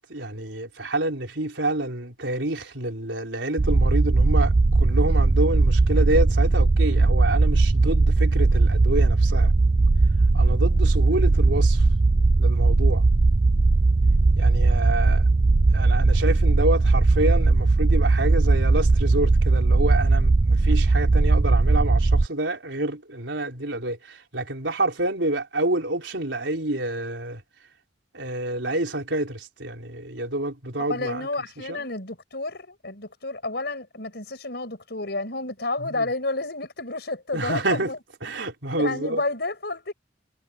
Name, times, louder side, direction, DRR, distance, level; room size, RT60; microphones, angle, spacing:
voice 1, 0.0-9.5 10.3-11.8 12.4-13.0 14.4-15.2 15.7-27.4 28.1-31.3 31.7-31.8 35.8-36.0 37.3-37.9 38.2-39.2, right 2 dB, 90° right, 4.4 m, -28 dB
sound 1, 3.6-22.3, right 3 dB, 30° right, 0.4 m, -19 dB
voice 2, 30.9-38.0 38.8-39.9, left 2 dB, 65° left, 6.6 m, -30 dB
head